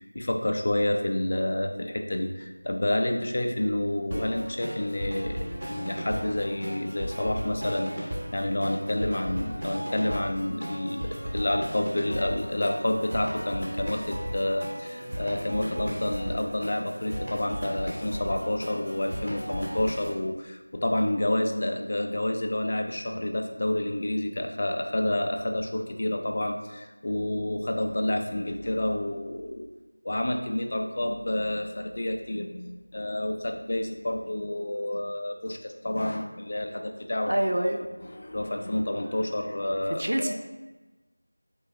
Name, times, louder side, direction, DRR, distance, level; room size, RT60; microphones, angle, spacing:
voice 1, 0.0-29.6 30.0-37.7 38.1-40.3, left 1 dB, 30° left, 4 dB, 0.3 m, -29 dB
sound 1, 4.1-20.1, equal, 10° right, 0.6 m, -36 dB
voice 2, 37.3-37.8 40.0-40.3, right 1 dB, 50° right, 4 dB, 0.4 m, -26 dB
3.6 x 3.2 x 4.1 m, 1.2 s
figure-of-eight pair, 175°, 0 cm